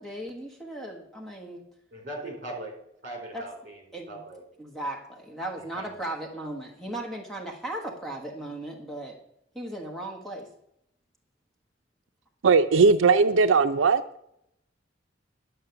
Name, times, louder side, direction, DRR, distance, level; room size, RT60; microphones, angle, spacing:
voice 1, 0.0-1.6 3.3-3.4 3.9-4.2 4.6-9.2 9.5-10.5, right 1 dB, ahead, -1 dB, 1.3 m, -36 dB
voice 2, 1.9-2.7 3.0-3.8 4.1-4.4 5.7-5.9, right 1 dB, 45° right, 1 dB, 3.9 m, -39 dB
voice 3, 12.4-14.0, right 4 dB, 85° right, 9 dB, 0.5 m, -19 dB
11.0 x 6.5 x 6.8 m, 0.77 s
head